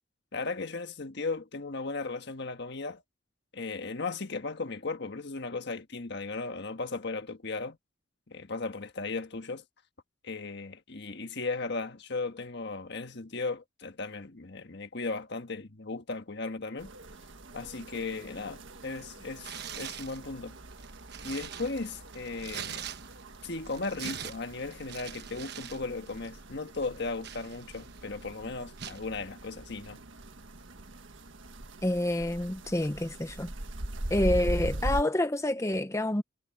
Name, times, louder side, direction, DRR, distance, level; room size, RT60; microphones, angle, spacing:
voice 1, 0.3-3.0 3.5-7.8 8.3-9.6 10.2-16.9 17.5-20.6 21.2-22.9 23.4-30.0, left 3 dB, 60° left, 1.5 m, -36 dB
sound 1, 16.8-35.0, right 1 dB, 75° right, 1.6 m, -41 dB
Tearing, 19.4-20.2 20.7-23.4 23.7-25.8 26.1-26.3 26.8-28.0 28.8-29.0, right 8 dB, 55° right, 1.2 m, -42 dB
voice 2, 31.8-33.5 34.1-36.2, left 1 dB, 15° left, 0.8 m, -28 dB
head